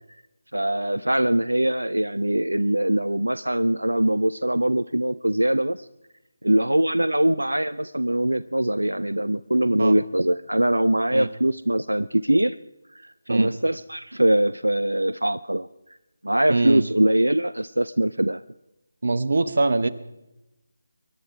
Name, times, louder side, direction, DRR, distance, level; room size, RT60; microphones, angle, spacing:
voice 1, 0.5-5.9 6.4-12.6 12.9-15.7 16.2-18.4, right 1 dB, 85° right, 16 dB, 0.4 m, -22 dB
voice 2, 16.5-16.8 19.0-19.9, right 2 dB, 55° right, 13 dB, 1.0 m, -22 dB
24.5 x 11.0 x 4.7 m, 0.94 s
figure-of-eight pair, 155°, 0 cm